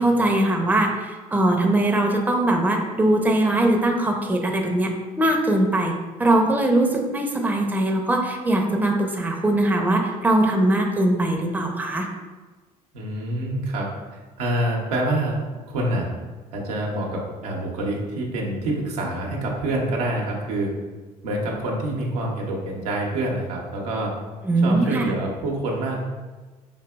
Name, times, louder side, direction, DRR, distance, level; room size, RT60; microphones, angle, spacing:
voice 1, 0.0-4.9 5.2-5.9 6.2-12.1 24.4-25.1, right 1 dB, 10° right, 1 dB, 0.6 m, -21 dB
voice 2, 12.9-13.9 14.1-15.3 15.7-16.1 16.5-20.7 21.2-24.1 24.6-26.0, right 1 dB, 80° right, -2 dB, 0.7 m, -26 dB
5.0 x 2.7 x 2.3 m, 1.3 s
hypercardioid pair, 55°, 20 cm